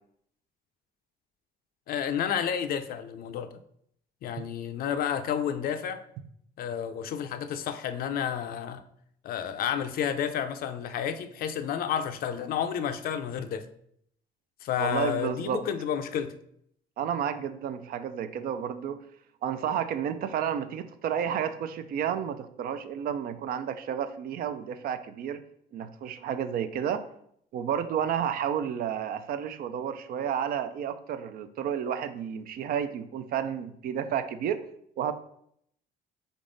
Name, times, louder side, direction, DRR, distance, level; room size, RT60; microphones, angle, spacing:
voice 1, 1.9-3.5 4.2-6.0 6.6-8.8 9.2-13.7 14.6-16.3, left 8 dB, 60° left, 0.5 m, -30 dB
voice 2, 14.8-15.6 17.0-19.0 19.4-25.4 25.7-27.0 27.5-34.6 35.0-35.1, right 8 dB, 60° right, 0.4 m, -31 dB
3.8 x 3.6 x 3.8 m
cardioid pair, 110°, 17 cm